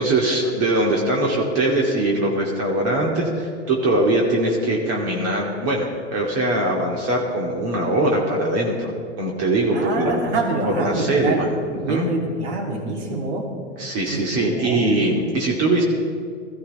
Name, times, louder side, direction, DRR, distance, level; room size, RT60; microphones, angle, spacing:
voice 1, 0.0-8.9 9.2-10.1 10.6-11.5 11.9-12.1 13.8-15.8, right 1 dB, 40° right, -2 dB, 2.6 m, -21 dB
voice 2, 9.7-11.5 11.8-13.5 14.1-14.2 14.4-15.0, right 2 dB, 60° right, 0 dB, 3.2 m, -26 dB
19.5 x 14.5 x 3.4 m, 2.2 s
hypercardioid pair, 115°, 37 cm